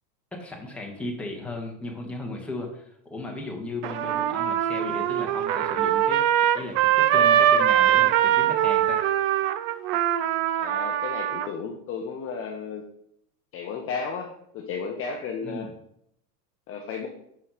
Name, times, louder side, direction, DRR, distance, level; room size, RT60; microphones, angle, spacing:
voice 1, 0.3-6.2 6.5-9.0 15.4-15.7, left 2 dB, ahead, -1 dB, 1.4 m, -36 dB
Trumpet, 3.8-11.5, right 11 dB, 40° right, 0.4 m, -22 dB
voice 2, 10.6-12.8 13.5-15.7 16.7-17.1, left 5 dB, 25° left, 2 dB, 0.8 m, -33 dB
5.9 x 5.4 x 5.1 m, 0.74 s
supercardioid pair, 125°, 49 cm